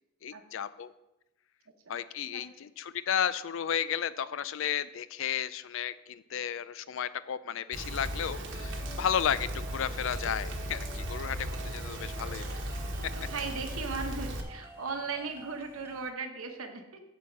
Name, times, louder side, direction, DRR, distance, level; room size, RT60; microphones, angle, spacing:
voice 1, 0.2-0.9 1.9-12.6, left 9 dB, 65° left, 15 dB, 0.4 m, -33 dB
Rain, 7.7-14.4, equal, 60° right, 1.1 m, -37 dB
sound 1, 8.3-16.1, right 3 dB, 10° right, 0.5 m, -50 dB
voice 2, 13.0-17.0, right 4 dB, 85° right, 5 dB, 1.1 m, -38 dB
8.3 x 4.4 x 7.3 m, 0.93 s
head